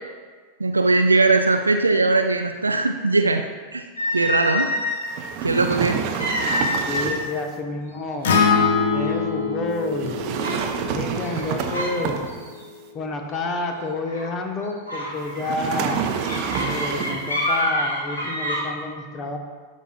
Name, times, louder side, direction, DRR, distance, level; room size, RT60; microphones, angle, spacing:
voice 1, 0.6-3.4 3.7-3.8 4.1-4.7 5.4-6.0, right 3 dB, 80° right, 6 dB, 0.3 m, -19 dB
sound 1, 4.0-5.2 6.2-7.3 7.6-7.9 8.6-8.7 9.2-9.6 10.4-10.7 11.3-12.0 12.3-12.6 14.1-14.3 14.9-18.6, left 1 dB, 75° left, 1.8 m, -27 dB
sound 2, 5.1-7.4 9.9-12.6 15.4-17.3, right 7 dB, 40° right, 0.6 m, -28 dB
voice 2, 6.8-8.3 8.9-10.3 10.9-12.2 12.9-16.1 16.7-19.4, left 2 dB, 30° left, 4 dB, 0.9 m, -29 dB
Acoustic guitar, 8.2-12.5, left 5 dB, 60° left, 0.9 m, -24 dB
12.0 x 6.0 x 2.3 m, 1.5 s
figure-of-eight pair, 90°, 0 cm